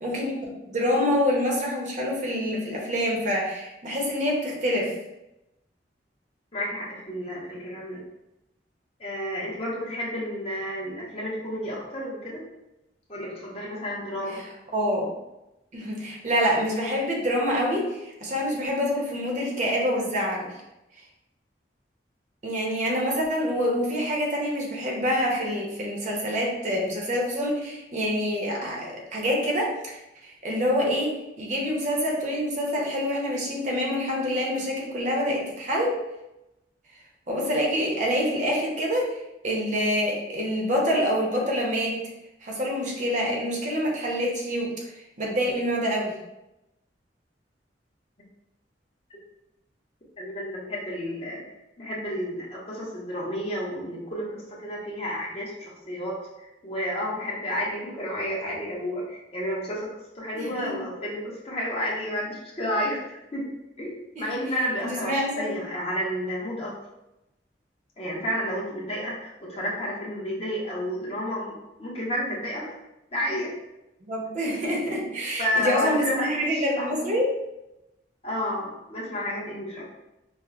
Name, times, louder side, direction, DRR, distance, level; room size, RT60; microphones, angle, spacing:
voice 1, 0.0-0.3 0.6-4.9 14.3-14.4 14.7-15.1 15.7-20.4 22.4-35.9 37.3-39.2 39.4-42.0 42.4-44.7 45.2-46.2 60.4-60.7 64.2-64.3 64.8-65.5 74.0-77.3, equal, 45° right, -2 dB, 0.7 m, -26 dB
voice 2, 6.5-8.0 9.0-12.4 13.1-14.4 50.2-51.4 51.8-59.9 60.1-66.7 68.0-72.7 73.1-73.5 75.4-76.9 78.2-79.9, equal, 35° left, -5 dB, 0.9 m, -31 dB
5.3 x 2.1 x 2.4 m, 0.93 s
head